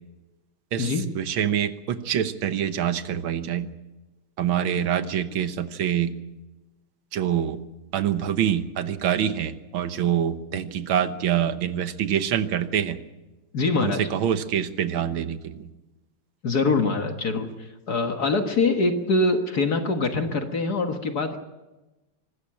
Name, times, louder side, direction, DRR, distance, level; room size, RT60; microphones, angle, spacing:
voice 1, 0.7-3.7 4.4-6.2 7.1-7.6 7.9-13.0 13.8-15.7, right 9 dB, 75° right, 11 dB, 1.8 m, -25 dB
voice 2, 13.5-14.0 16.4-17.5 17.9-21.4, left 3 dB, 50° left, 6 dB, 1.9 m, -23 dB
25.0 x 13.5 x 8.8 m, 1.1 s
omnidirectional pair, 2.3 m